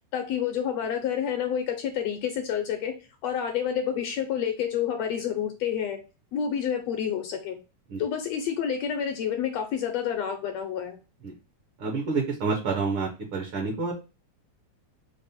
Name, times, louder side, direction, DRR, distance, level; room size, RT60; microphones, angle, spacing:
voice 1, 0.1-2.9 3.2-6.0 6.3-7.6 8.0-11.0, left 8 dB, 75° left, 5 dB, 1.6 m, -29 dB
voice 2, 11.8-13.9, right 4 dB, 60° right, 0 dB, 1.5 m, -28 dB
5.3 x 2.0 x 4.1 m, 0.30 s
omnidirectional pair, 3.3 m